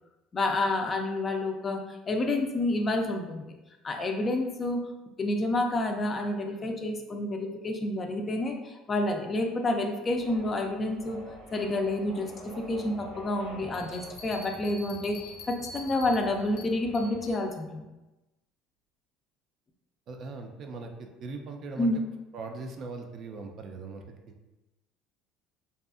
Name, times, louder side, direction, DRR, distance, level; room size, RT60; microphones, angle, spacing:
voice 1, 0.3-3.5 3.8-4.8 5.2-11.2 11.5-12.3 12.6-15.2 15.5-17.9 21.8-22.0, left 2 dB, 30° left, 3 dB, 0.4 m, -29 dB
sound 1, 10.1-17.3, right 1 dB, 80° right, 0.8 m, -47 dB
sound 2, 13.7-17.4, left 2 dB, 85° left, 0.5 m, -46 dB
voice 2, 20.1-21.9 22.3-24.3, right 3 dB, 50° right, 4 dB, 0.3 m, -40 dB
2.6 x 2.3 x 2.4 m, 1.0 s
supercardioid pair, 100°, 0 cm